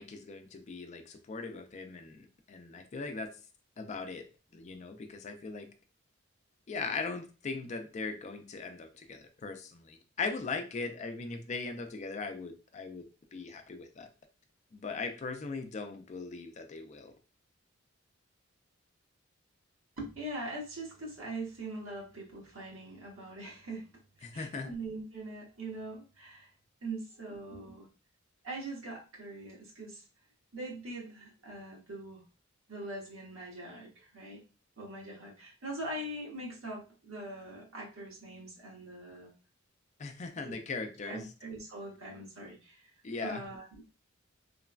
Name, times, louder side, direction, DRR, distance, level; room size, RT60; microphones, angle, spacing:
voice 1, 0.0-3.4 3.8-4.3 4.5-5.7 6.7-13.0 13.3-14.1 14.7-17.1 24.2-24.7 40.0-41.3 43.0-43.4, left 4 dB, 35° left, 6 dB, 0.4 m, -39 dB
voice 2, 20.0-23.9 24.3-26.5 26.8-27.9 28.4-30.0 30.5-32.2 32.7-34.4 34.8-39.3 40.5-40.6 41.1-42.8 43.2-43.7, right 2 dB, 85° right, -4 dB, 1.1 m, -42 dB
3.2 x 2.1 x 2.3 m, 0.33 s
head